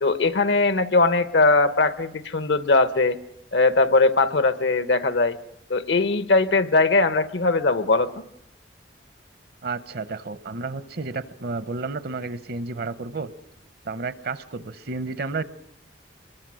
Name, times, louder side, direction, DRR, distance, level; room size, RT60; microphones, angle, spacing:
voice 1, 0.0-3.2 3.5-5.4 5.7-8.2, left 3 dB, 75° left, 13 dB, 0.9 m, -20 dB
voice 2, 9.6-13.3 13.8-15.4, right 3 dB, 60° right, 15 dB, 0.8 m, -31 dB
25.0 x 22.0 x 6.3 m, 0.80 s
head